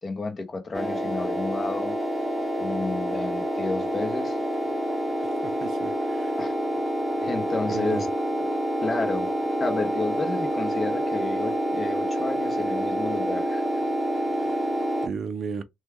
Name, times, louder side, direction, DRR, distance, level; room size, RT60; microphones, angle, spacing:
voice 1, 0.0-1.9 2.6-4.4 6.4-6.5 7.2-8.1 8.8-9.3 9.6-13.7, left 3 dB, 35° left, 0.9 m, -31 dB
sound 1, 0.7-15.1, equal, 5° left, 1.1 m, -27 dB
voice 2, 5.4-6.4 7.7-8.0 14.4-14.6 15.0-15.6, right 5 dB, 55° right, 0.5 m, -34 dB
3.0 x 2.2 x 3.4 m
cardioid pair, 90°, 0 cm